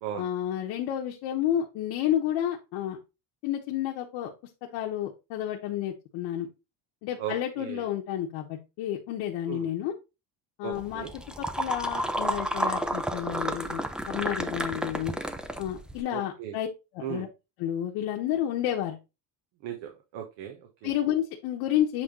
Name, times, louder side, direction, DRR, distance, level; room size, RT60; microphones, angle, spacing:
voice 1, 0.2-3.0 3.4-4.3 4.7-6.5 7.0-9.9 10.6-11.1 11.4-15.1 15.6-16.7 16.9-17.3 17.6-19.0 20.8-22.0, left 11 dB, 75° left, 0 dB, 1.2 m, -30 dB
voice 2, 7.2-7.8 9.5-9.7 10.6-11.1 16.1-16.6 17.0-17.2 19.6-20.9, right 9 dB, 80° right, 2 dB, 1.3 m, -37 dB
sound 1, 10.7-16.0, right 1 dB, ahead, 0.4 m, -31 dB
7.8 x 3.6 x 3.8 m, 0.27 s
cardioid pair, 135°, 43 cm